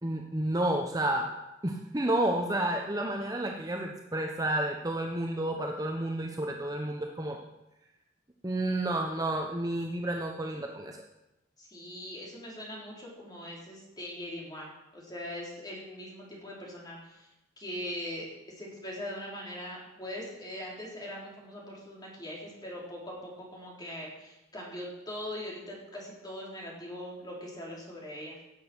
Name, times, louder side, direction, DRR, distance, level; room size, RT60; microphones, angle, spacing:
voice 1, 0.0-1.3 1.6-7.4 8.4-11.0, right 1 dB, 20° right, 1 dB, 0.9 m, -30 dB
voice 2, 11.6-17.3 17.6-28.4, left 1 dB, 20° left, -3 dB, 4.0 m, -41 dB
17.5 x 7.7 x 6.2 m, 0.96 s
head